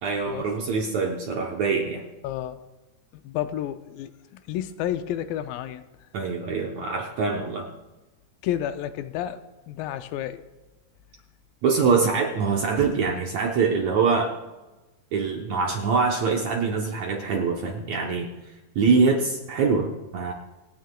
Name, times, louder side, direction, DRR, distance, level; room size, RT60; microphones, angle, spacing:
voice 1, 0.0-2.0 6.1-7.7 11.6-14.3 15.1-18.3 18.7-20.3, right 5 dB, 70° right, 1 dB, 1.7 m, -24 dB
voice 2, 2.2-2.6 3.1-5.8 8.4-9.4 9.7-10.4, left 11 dB, 80° left, 10 dB, 2.2 m, -31 dB
27.0 x 9.4 x 2.2 m, 1.1 s
omnidirectional pair, 4.2 m